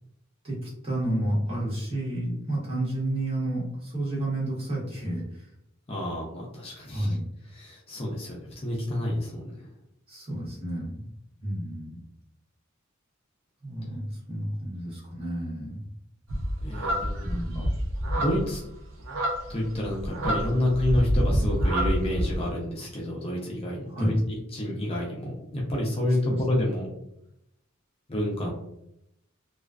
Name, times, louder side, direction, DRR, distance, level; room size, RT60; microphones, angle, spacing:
voice 1, 0.4-5.5 6.9-7.2 10.1-11.0 11.4-12.0 13.6-15.8 17.2-17.6 23.9-24.1 26.3-26.4, right 1 dB, 30° right, -6 dB, 1.1 m, -30 dB
voice 2, 5.9-7.2 7.5-9.7 16.6-17.6 18.1-18.6 19.5-26.9 28.1-28.5, left 1 dB, 30° left, -3 dB, 0.5 m, -29 dB
sound 1, 16.3-22.4, equal, 75° right, 0.6 m, -27 dB
2.4 x 2.3 x 2.2 m, 0.80 s
head